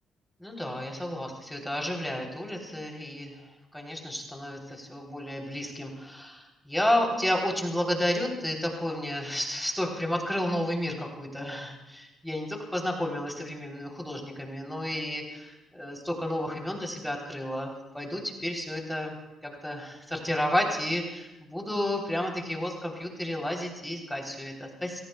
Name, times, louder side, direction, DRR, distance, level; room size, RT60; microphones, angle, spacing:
voice 1, 0.4-3.3 3.7-19.2 19.4-25.0, left 1 dB, 5° left, 0 dB, 3.2 m, -31 dB
29.0 x 18.0 x 2.2 m, 1.0 s
cardioid pair, 90°, 0 cm